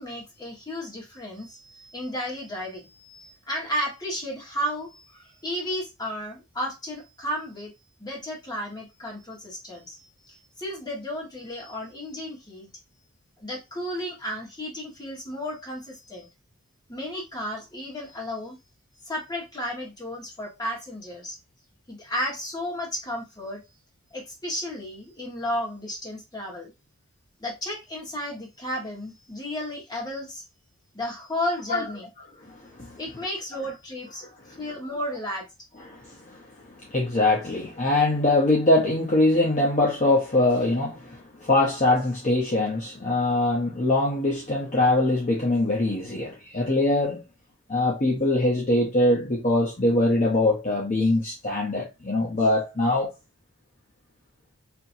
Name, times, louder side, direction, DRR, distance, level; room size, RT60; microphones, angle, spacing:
voice 1, 0.0-7.7 8.0-12.7 13.4-16.3 16.9-18.6 19.0-21.4 21.9-23.6 24.1-26.7 27.4-30.4 30.9-32.1 33.0-35.5, equal, 20° left, 1.5 m, -33 dB
voice 2, 32.4-33.0 35.9-36.4 36.7-47.2 47.7-53.1, left 2 dB, 35° left, 0.9 m, -23 dB
4.4 x 2.9 x 2.7 m
head